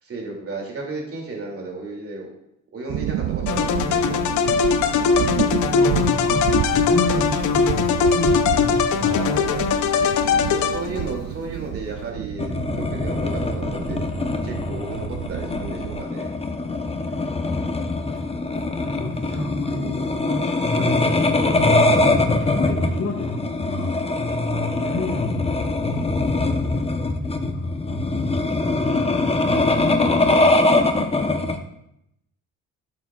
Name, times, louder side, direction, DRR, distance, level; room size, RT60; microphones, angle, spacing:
voice 1, 0.0-2.3 2.7-4.2 5.7-6.0 9.0-9.6 10.4-14.0 14.4-16.3, right 2 dB, 50° right, 0 dB, 2.6 m, -33 dB
sound 1, 2.9-16.0, right 13 dB, 75° right, 0.4 m, -30 dB
sound 2, 3.5-11.2, left 6 dB, 75° left, 0.7 m, -20 dB
voice 2, 5.7-9.2 17.0-17.8 18.1-18.3 18.8-26.1 26.5-28.4 29.4-30.6, left 2 dB, 55° left, -2 dB, 1.5 m, -30 dB
sound 3, 12.4-31.6, left 2 dB, 20° left, 0.8 m, -23 dB
11.5 x 7.1 x 2.4 m, 0.79 s
cardioid pair, 90°, 30 cm